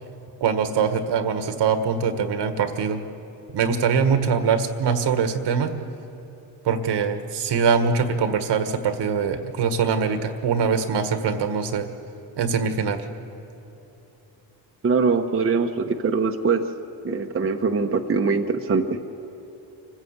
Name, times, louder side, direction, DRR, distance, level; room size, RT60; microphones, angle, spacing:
voice 1, 0.4-3.0 3.5-5.7 6.7-11.9 12.4-13.1, right 6 dB, 65° right, 8 dB, 1.6 m, -23 dB
voice 2, 14.8-16.6 17.0-19.0, right 4 dB, 30° right, 3 dB, 1.1 m, -22 dB
25.5 x 15.0 x 8.2 m, 3.0 s
cardioid pair, 100°, 45 cm